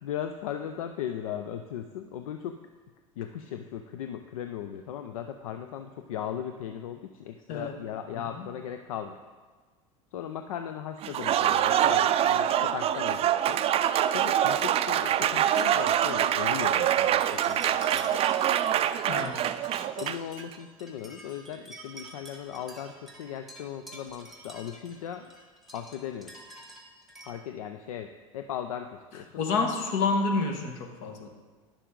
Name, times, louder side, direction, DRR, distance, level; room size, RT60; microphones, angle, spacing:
voice 1, 0.0-2.6 3.2-9.2 10.1-13.6 14.1-18.2 20.0-25.3 25.7-26.4 27.3-29.4, left 9 dB, 80° left, 7 dB, 0.5 m, -37 dB
Applause, 11.0-20.4, right 10 dB, 35° right, 0.4 m, -25 dB
sound 1, 15.5-27.3, right 1 dB, ahead, 1.4 m, -49 dB
voice 2, 19.1-19.4 29.4-31.3, left 4 dB, 60° left, 4 dB, 1.3 m, -28 dB
10.0 x 6.7 x 3.8 m, 1.4 s
hypercardioid pair, 85°, 18 cm